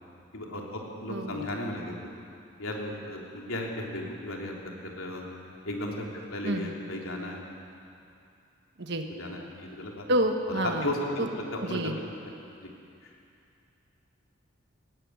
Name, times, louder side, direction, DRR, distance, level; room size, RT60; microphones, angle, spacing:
voice 1, 0.3-2.1 2.6-5.3 5.6-6.0 6.3-7.4 9.2-10.1 10.5-11.9 12.6-12.7 13.0-13.1, left 1 dB, 90° left, -1 dB, 3.3 m, -35 dB
voice 2, 1.1-1.6 6.4-6.7 8.8-9.1 10.1-10.9 11.2-11.3 11.6-12.0, right 1 dB, 60° right, 4 dB, 1.4 m, -28 dB
17.5 x 16.5 x 9.5 m, 2.6 s
head